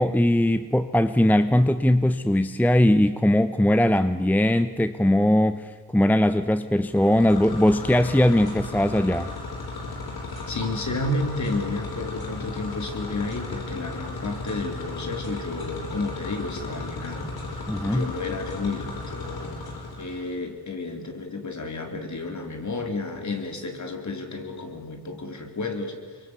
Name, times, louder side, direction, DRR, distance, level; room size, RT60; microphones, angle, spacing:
voice 1, 0.0-9.3 17.7-18.0, left 1 dB, 5° left, 11 dB, 0.9 m, -20 dB
sound 1, 6.9-20.3, left 3 dB, 65° left, 5.7 m, -35 dB
voice 2, 10.5-17.4 17.8-19.5 20.0-26.2, left 2 dB, 45° left, 5 dB, 4.1 m, -31 dB
24.5 x 23.0 x 8.3 m, 1.5 s
cardioid pair, 75°, 40 cm